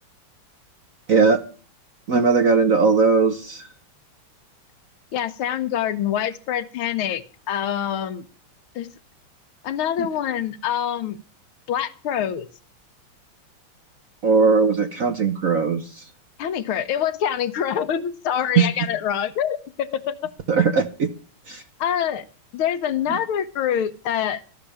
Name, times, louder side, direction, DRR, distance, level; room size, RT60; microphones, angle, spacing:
voice 1, 1.1-1.4 2.1-3.6 10.0-10.1 14.2-16.0 18.6-18.7 20.5-21.1 21.5-21.6 23.1-23.2, right 4 dB, 55° right, 9 dB, 1.0 m, -19 dB
voice 2, 5.1-8.3 8.8-8.9 9.6-11.2 11.7-12.5 16.4-20.3 21.8-22.2 22.5-24.4, left 9 dB, 75° left, 12 dB, 1.7 m, -25 dB
14.5 x 6.7 x 8.5 m, 0.38 s
omnidirectional pair, 2.4 m